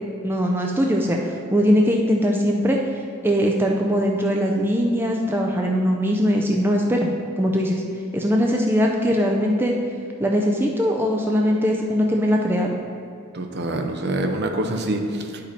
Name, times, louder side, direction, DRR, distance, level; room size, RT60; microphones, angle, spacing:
voice 1, 0.2-1.2 1.5-2.8 3.2-7.1 7.4-7.8 8.1-9.8 10.2-12.8, equal, 10° right, 0 dB, 0.4 m, -20 dB
voice 2, 13.3-15.5, right 1 dB, 50° right, 4 dB, 0.6 m, -26 dB
9.9 x 5.1 x 4.2 m, 2.4 s
head